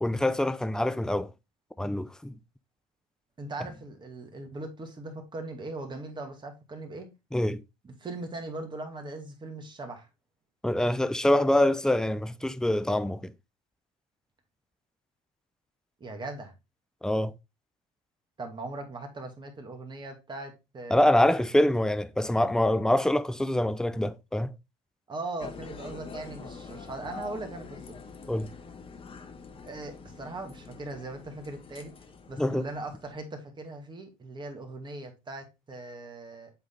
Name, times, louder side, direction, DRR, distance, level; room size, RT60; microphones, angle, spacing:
voice 1, 0.0-1.3 1.8-2.3 7.3-7.6 10.6-13.3 17.0-17.3 20.9-24.5 28.3-28.5 32.4-32.7, left 1 dB, 5° left, 0.5 m, -25 dB
voice 2, 3.4-7.1 7.8-10.1 16.0-16.5 18.4-21.4 25.1-27.8 29.6-31.9 32.3-36.5, right 2 dB, 25° right, 2.2 m, -39 dB
sound 1, 25.4-33.2, left 5 dB, 30° left, 1.2 m, -45 dB
8.0 x 4.0 x 3.8 m
supercardioid pair, 90°, 17 cm